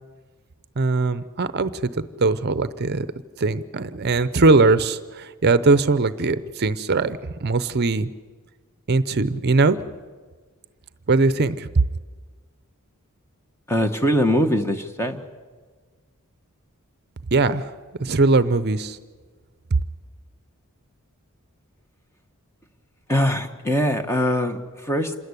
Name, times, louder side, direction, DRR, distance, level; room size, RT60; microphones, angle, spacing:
voice 1, 0.8-3.1 3.4-8.1 8.9-9.8 11.1-11.8 17.3-17.7 18.0-19.0, right 3 dB, 50° right, 14 dB, 0.6 m, -20 dB
voice 2, 13.7-15.2 23.1-25.2, equal, 10° left, 6 dB, 1.2 m, -22 dB
27.0 x 13.5 x 9.8 m, 1.5 s
head